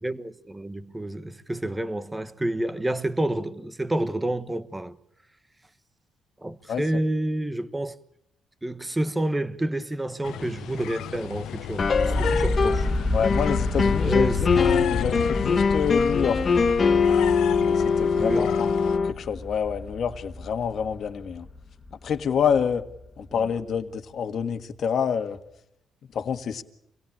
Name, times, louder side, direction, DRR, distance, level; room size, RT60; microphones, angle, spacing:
voice 1, 0.0-5.0 6.4-8.0 8.6-12.9 14.0-14.5 18.2-18.5 23.3-23.4, right 1 dB, 15° right, 1.3 m, -29 dB
sound 1, 10.2-19.0, left 11 dB, 80° left, 0.8 m, -33 dB
sound 2, 11.8-12.9 13.2-19.1, left 5 dB, 40° left, 1.8 m, -23 dB
sound 3, 11.8-23.6, left 2 dB, 10° left, 2.7 m, -31 dB
voice 2, 13.1-14.6 14.9-16.4 17.7-18.7 19.2-21.5 22.0-22.9 23.2-25.4 26.1-26.6, left 7 dB, 60° left, 1.7 m, -27 dB
26.5 x 17.5 x 8.6 m
cardioid pair, 90°, 0 cm